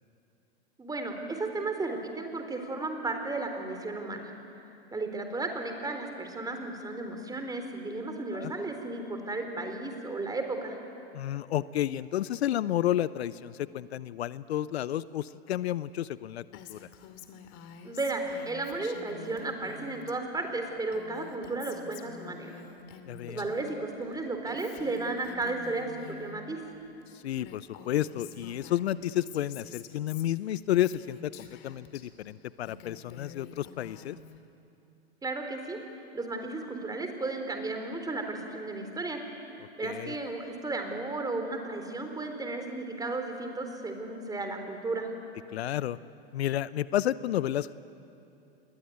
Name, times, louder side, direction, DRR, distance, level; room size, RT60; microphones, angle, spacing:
voice 1, 0.8-4.3 4.9-10.8 17.8-22.5 23.3-26.6 35.2-35.8 36.1-39.2 39.8-45.1, right 2 dB, 10° right, 5 dB, 4.0 m, -34 dB
voice 2, 11.1-16.9 23.1-23.5 27.1-34.2 39.8-40.1 45.5-46.0 46.3-47.7, left 12 dB, 75° left, 17 dB, 0.8 m, -31 dB
Female speech woman speaking, 16.5-20.1 20.4-23.7 24.0-26.4 27.0-27.1 27.3-32.0 32.4-34.4, left 7 dB, 45° left, 2.6 m, -48 dB
29.0 x 21.5 x 9.5 m, 2.8 s
hypercardioid pair, 110°, 33 cm